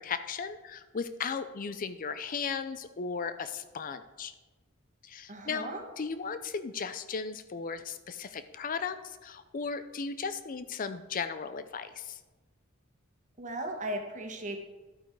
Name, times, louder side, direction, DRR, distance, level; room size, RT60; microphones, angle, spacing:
voice 1, 0.0-4.3 5.0-5.7 6.0-12.2, left 5 dB, 40° left, 11 dB, 0.5 m, -36 dB
voice 2, 5.3-5.8 13.4-14.6, right 1 dB, 35° right, 2 dB, 1.5 m, -36 dB
11.5 x 8.6 x 4.6 m, 1.2 s
head